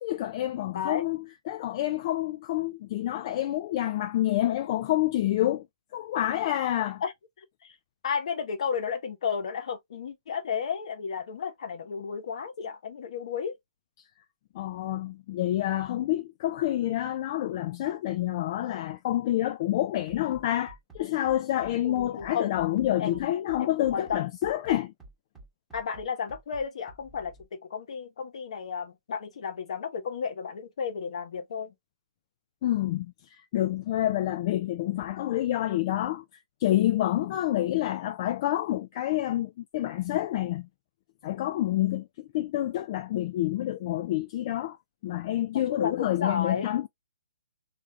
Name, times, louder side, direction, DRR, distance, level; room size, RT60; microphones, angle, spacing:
voice 1, 0.0-1.2 1.5-5.7 5.9-7.0 14.5-24.9 32.6-36.2 36.6-40.7 41.2-44.8 45.0-46.9, left 13 dB, 35° left, 0.3 m, -28 dB
voice 2, 7.4-7.7 8.0-13.5 21.8-22.5 23.0-23.2 23.6-24.3 25.7-31.7 45.5-46.7, left 6 dB, 55° left, 1.0 m, -33 dB
Bass drum, 20.1-27.5, right 3 dB, 5° right, 1.1 m, -50 dB
3.3 x 2.5 x 2.5 m
hypercardioid pair, 145°, 4 cm